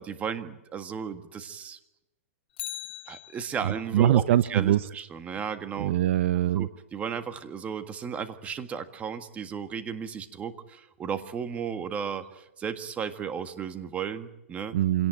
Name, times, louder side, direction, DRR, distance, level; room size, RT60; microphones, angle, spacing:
voice 1, 0.0-1.8 3.1-5.9 6.5-14.8, right 7 dB, 15° right, 9 dB, 1.7 m, -35 dB
Bicycle, 2.5-3.9 12.2-12.3, left 12 dB, 50° left, 1.8 m, -40 dB
voice 2, 3.6-4.8 5.8-6.7 14.7-15.1, right 12 dB, 60° right, 15 dB, 0.8 m, -23 dB
26.5 x 17.5 x 9.1 m, 0.95 s
hypercardioid pair, 145°, 8 cm